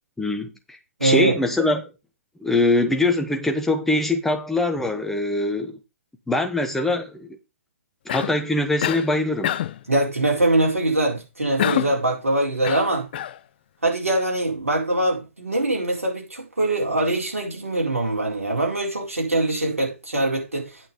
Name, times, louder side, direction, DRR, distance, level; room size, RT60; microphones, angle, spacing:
voice 1, 0.2-1.9 2.4-5.8 6.3-7.3 8.0-9.5, left 2 dB, 5° left, 1.2 m, -23 dB
voice 2, 1.0-1.3 9.9-13.1 13.8-20.7, right 2 dB, 75° right, 4.2 m, -23 dB
Cough, 8.1-8.4 8.8-9.1 9.4-9.8 11.6-12.0 12.6-13.4, left 11 dB, 45° left, 0.5 m, -26 dB
8.9 x 5.8 x 5.3 m
figure-of-eight pair, 120°, 8 cm